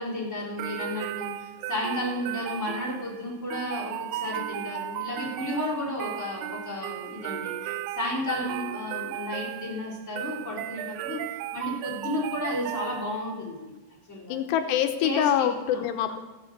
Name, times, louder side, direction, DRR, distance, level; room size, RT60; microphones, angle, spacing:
voice 1, 0.0-11.2 11.5-13.7 14.1-14.4 15.0-15.8, left 1 dB, 15° left, -6 dB, 3.6 m, -33 dB
sound 1, 0.6-13.4, right 13 dB, 85° right, 2.3 m, -35 dB
voice 2, 14.3-16.2, left 10 dB, 80° left, 7 dB, 2.9 m, -25 dB
15.5 x 8.6 x 6.6 m, 1.1 s
omnidirectional pair, 5.0 m